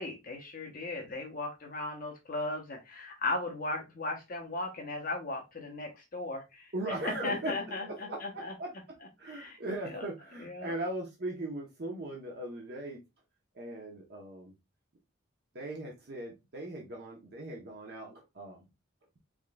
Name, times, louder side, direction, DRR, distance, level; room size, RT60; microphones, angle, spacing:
voice 1, 0.0-6.7 7.0-8.5 9.2-9.6 9.9-10.1 10.4-10.7, left 2 dB, 45° left, 0.8 m, -37 dB
voice 2, 6.7-13.0 13.5-14.5 15.5-18.7, right 1 dB, 50° right, 0.8 m, -39 dB
3.7 x 3.7 x 2.2 m
head